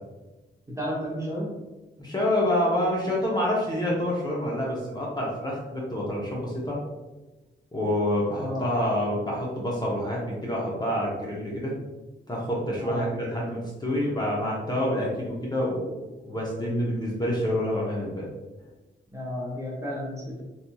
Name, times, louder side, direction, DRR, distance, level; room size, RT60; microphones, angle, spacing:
voice 1, 0.7-1.5 8.3-8.7 12.8-13.1 19.1-20.4, equal, 15° right, -4 dB, 0.9 m, -32 dB
voice 2, 2.0-6.8 7.7-11.7 12.3-15.9 16.2-18.3, left 1 dB, 20° left, -5 dB, 0.7 m, -27 dB
2.8 x 2.5 x 2.2 m, 1.1 s
cardioid pair, 75°, 20 cm